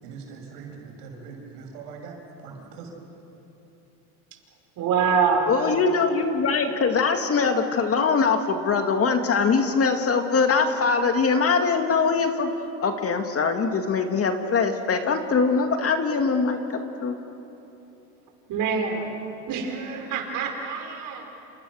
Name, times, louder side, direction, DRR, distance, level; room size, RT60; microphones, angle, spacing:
voice 1, 0.0-2.9, right 5 dB, 80° right, 1 dB, 7.0 m, -41 dB
voice 2, 4.8-5.5 18.5-19.2 19.5-21.3, right 6 dB, 45° right, 3 dB, 5.5 m, -25 dB
voice 3, 5.5-12.5 12.8-17.2, left 5 dB, 30° left, 5 dB, 2.2 m, -22 dB
28.5 x 28.0 x 6.4 m, 3.0 s
supercardioid pair, 110°, 46 cm